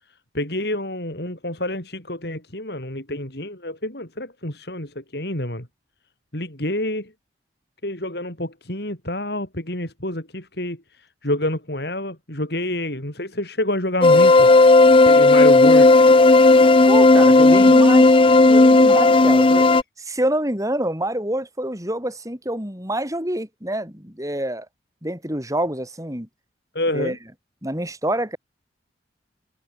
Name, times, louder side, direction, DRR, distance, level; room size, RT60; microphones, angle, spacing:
voice 1, 0.3-5.7 6.3-7.1 7.8-14.5 15.0-16.0 17.5-17.7 26.7-27.2, left 1 dB, 60° left, 6.6 m, -28 dB
sound 1, 14.0-19.8, left 2 dB, 30° left, 0.6 m, -12 dB
voice 2, 16.9-18.2 18.4-19.7 20.0-24.7 25.0-26.3 26.9-27.2 27.6-28.4, right 1 dB, 20° right, 7.8 m, -27 dB
head